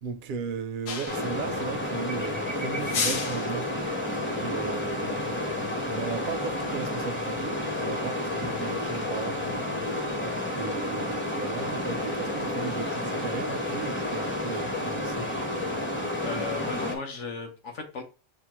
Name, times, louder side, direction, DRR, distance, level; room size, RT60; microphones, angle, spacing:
voice 1, 0.0-3.7 4.4-9.4 10.5-15.3, right 6 dB, 60° right, 0.5 m, -36 dB
sound 1, 0.9-1.4 2.8-3.6, left 5 dB, 85° left, 1.2 m, -31 dB
sound 2, 1.1-17.0, left 1 dB, 10° left, 0.6 m, -30 dB
voice 2, 16.2-18.0, left 4 dB, 65° left, 1.2 m, -36 dB
6.4 x 2.2 x 2.9 m
omnidirectional pair, 1.4 m